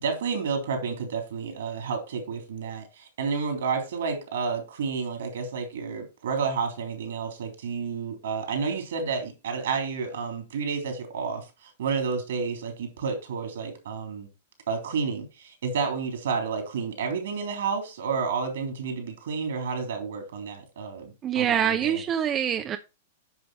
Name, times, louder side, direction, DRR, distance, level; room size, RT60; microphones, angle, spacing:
voice 1, 0.0-11.4 11.8-14.3 14.7-22.0, right 5 dB, 70° right, 5 dB, 3.5 m, -30 dB
voice 2, 21.2-22.8, right 9 dB, 30° right, 8 dB, 0.7 m, -25 dB
9.7 x 5.5 x 4.5 m, 0.29 s
hypercardioid pair, 105°, 0 cm